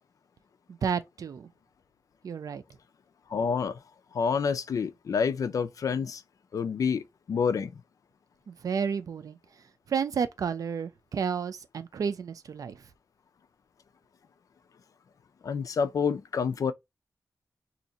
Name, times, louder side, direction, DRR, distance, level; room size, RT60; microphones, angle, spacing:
voice 1, 0.7-1.5 2.2-2.6 8.5-9.4 9.9-12.8, right 6 dB, 80° right, 0.5 m, -31 dB
voice 2, 3.3-3.8 4.1-6.2 6.5-7.7 15.4-16.7, left 6 dB, 75° left, 0.4 m, -28 dB
2.7 x 2.5 x 4.0 m
cardioid pair, 70°, 6 cm